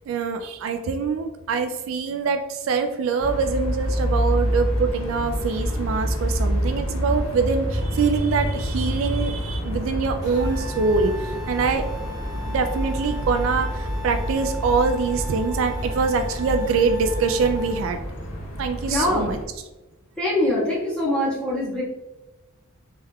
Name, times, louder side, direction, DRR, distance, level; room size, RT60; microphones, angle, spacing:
voice 1, 0.1-11.8 12.5-18.0 18.6-19.4, right 5 dB, 70° right, 7 dB, 0.3 m, -24 dB
sound 1, 3.2-19.4, equal, 65° left, 0.8 m, -27 dB
sound 2, 10.2-17.8, left 1 dB, 20° right, 1.2 m, -39 dB
voice 2, 18.9-19.3 20.2-21.8, left 1 dB, 5° left, -9 dB, 1.4 m, -23 dB
3.4 x 3.3 x 2.2 m, 1.1 s
head